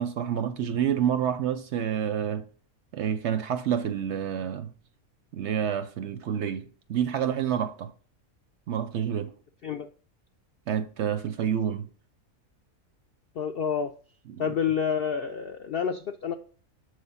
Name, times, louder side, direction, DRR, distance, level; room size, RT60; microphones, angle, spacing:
voice 1, 0.0-2.5 2.9-4.7 5.3-7.9 8.7-9.3 10.7-11.9 14.3-14.4, right 9 dB, 65° right, 0.7 m, -28 dB
voice 2, 13.4-13.9 14.4-16.3, left 7 dB, 70° left, 0.5 m, -28 dB
7.5 x 3.3 x 5.5 m
omnidirectional pair, 1.5 m